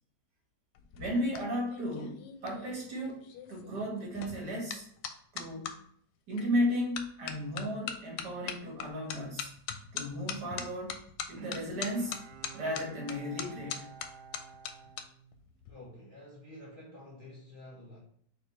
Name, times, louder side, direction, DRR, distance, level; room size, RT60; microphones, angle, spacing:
sound 1, 0.7-5.7 6.4-6.7 7.0-15.0 15.3-15.7, left 8 dB, 90° left, 1.3 m, -41 dB
voice 1, 1.0-3.2 3.5-4.9 5.3-5.7 6.3-9.5 9.9-11.0 11.3-12.2 12.5-13.9, equal, 70° right, 2.3 m, -34 dB
Bowed string instrument, 11.3-15.8 16.3-16.4, right 6 dB, 90° right, 0.6 m, -52 dB
voice 2, 15.7-18.0, left 1 dB, 50° left, 0.6 m, -49 dB
4.9 x 2.4 x 4.4 m
omnidirectional pair, 1.9 m